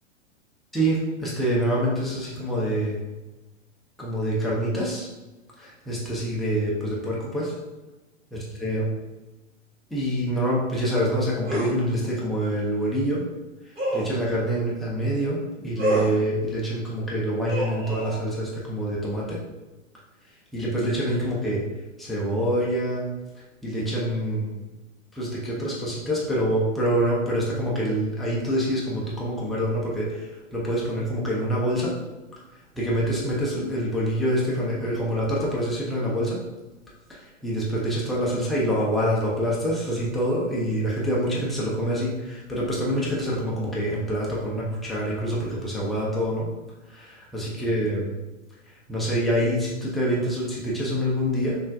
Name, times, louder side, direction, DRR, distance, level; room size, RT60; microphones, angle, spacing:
voice 1, 0.7-3.0 4.0-5.1 5.6-7.5 8.3-8.9 9.9-13.2 13.9-19.4 20.5-21.6 22.0-23.1 23.6-24.5 25.1-32.0 32.7-36.4 37.1-46.5 46.9-48.1 48.9-51.6, equal, ahead, -6 dB, 0.3 m, -26 dB
sound 1, 11.5-11.8 13.8-14.1 15.8-16.2 17.5-18.2, right 1 dB, 15° right, 1.2 m, -26 dB
5.5 x 2.4 x 2.5 m, 1.1 s
figure-of-eight pair, 105°, 38 cm